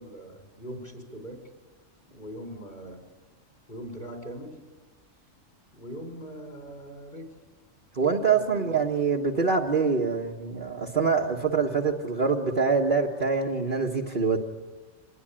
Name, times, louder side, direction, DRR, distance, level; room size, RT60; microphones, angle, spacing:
voice 1, 0.0-1.4 2.0-3.0 3.7-4.6 5.7-7.3 8.2-8.7, equal, 40° left, 3 dB, 5.7 m, -41 dB
voice 2, 7.9-14.4, right 5 dB, 40° right, -3 dB, 1.7 m, -25 dB
26.5 x 20.5 x 8.9 m, 1.3 s
omnidirectional pair, 1.3 m